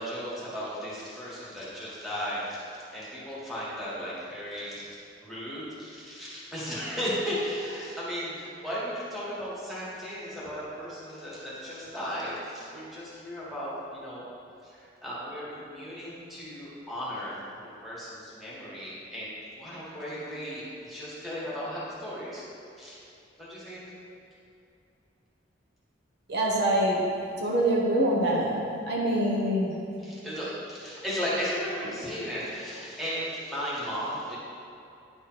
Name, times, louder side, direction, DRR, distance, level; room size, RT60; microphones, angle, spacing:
voice 1, 0.0-14.2 14.6-22.4 22.8-23.0 23.4-23.9 30.0-34.4, equal, ahead, -9 dB, 1.6 m, -35 dB
voice 2, 26.3-27.0 27.4-29.8, right 1 dB, 60° right, -4 dB, 1.0 m, -25 dB
9.8 x 3.4 x 4.5 m, 2.6 s
head